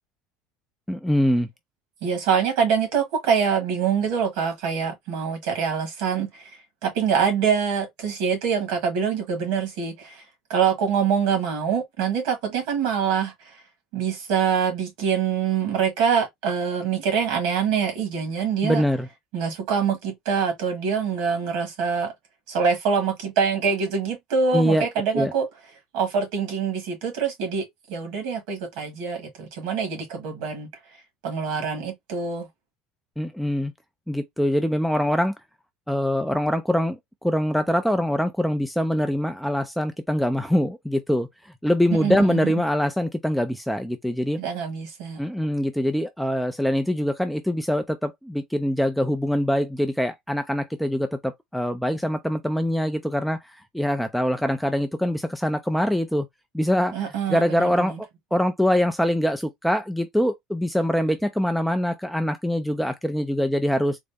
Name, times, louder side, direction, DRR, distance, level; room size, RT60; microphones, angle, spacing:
voice 1, 0.9-1.5 18.6-19.1 24.5-24.9 25.1-25.3 33.2-33.7 34.1-35.3 35.9-44.4 45.2-56.3 56.5-64.0, equal, ahead, 0.3 m, -24 dB
voice 2, 2.0-6.5 6.8-10.2 10.5-13.6 13.9-18.8 19.3-22.1 22.5-25.5 25.9-30.7 31.2-32.5 42.0-42.4 44.4-45.2 56.9-57.9, right 6 dB, 75° right, 1.5 m, -25 dB
3.8 x 2.1 x 3.4 m
cardioid pair, 165°, 0 cm